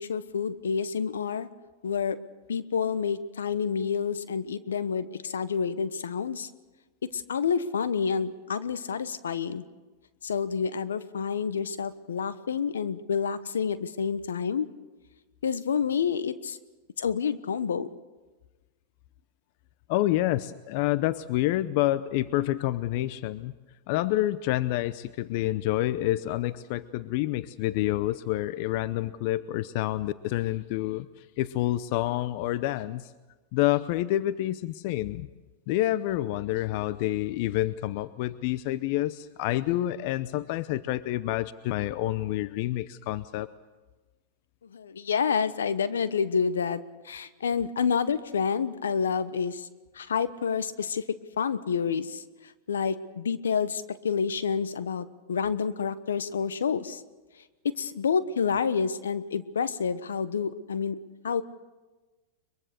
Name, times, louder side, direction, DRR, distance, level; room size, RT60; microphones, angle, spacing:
voice 1, 0.0-1.5 1.8-2.2 2.5-6.5 7.0-9.6 10.2-14.7 15.4-16.6 17.0-17.9 44.7-49.7 49.9-52.2 52.7-57.0 57.7-61.0 61.2-61.4, left 6 dB, 85° left, 13 dB, 1.1 m, -28 dB
voice 2, 19.9-23.5 23.9-33.1 33.5-35.3 35.7-43.5, left 15 dB, 55° left, 16 dB, 0.7 m, -28 dB
23.0 x 22.5 x 6.8 m, 1.2 s
hypercardioid pair, 105°, 0 cm